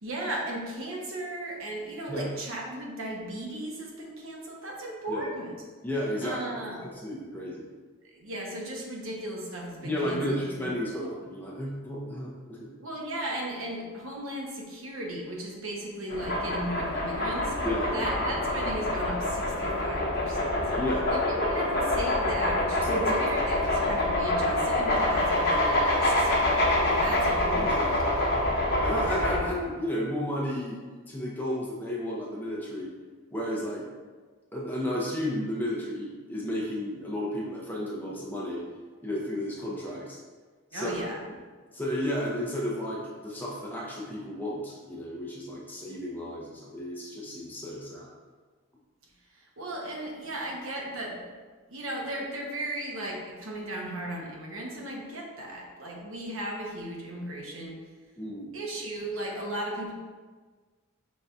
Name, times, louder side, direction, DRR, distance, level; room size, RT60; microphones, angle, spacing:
voice 1, 0.0-5.5 6.2-6.8 8.1-10.6 12.8-17.5 17.9-20.6 21.1-28.2 29.3-29.4 40.7-41.2 49.6-51.2 51.7-57.8 58.5-59.9, right 1 dB, 70° right, -1 dB, 0.9 m, -36 dB
voice 2, 5.8-6.4 6.7-7.6 9.8-12.7 17.6-18.1 20.8-21.0 22.8-23.3 27.5-28.1 28.8-30.8 31.1-32.9 33.3-33.8 34.5-38.6 39.0-40.2 40.7-41.0 41.7-48.1 58.2-58.5, equal, 10° left, -4 dB, 0.6 m, -33 dB
sound 1, 16.1-29.4, left 1 dB, 45° left, 0.8 m, -26 dB
5.3 x 3.9 x 2.3 m, 1.4 s
head